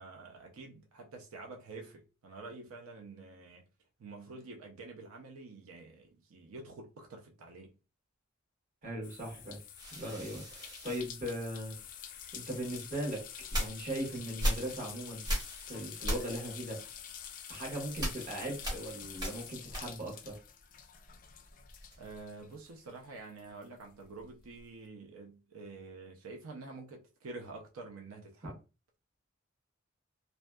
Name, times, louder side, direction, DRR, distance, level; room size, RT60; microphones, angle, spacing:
voice 1, 0.0-3.7 4.0-7.7 22.0-28.6, right 3 dB, 85° right, 0.5 m, -48 dB
voice 2, 8.8-9.6 9.9-11.8 12.3-15.3 15.6-16.8 17.5-20.4 28.4-28.5, right 1 dB, 40° right, 1.1 m, -39 dB
sound 1, 9.0-23.1 23.4-24.6, left 9 dB, 40° left, 0.3 m, -48 dB
sound 2, 9.8-12.0 12.6-20.3 20.6-22.2, equal, 20° right, 0.9 m, -39 dB
2.6 x 2.2 x 2.2 m
head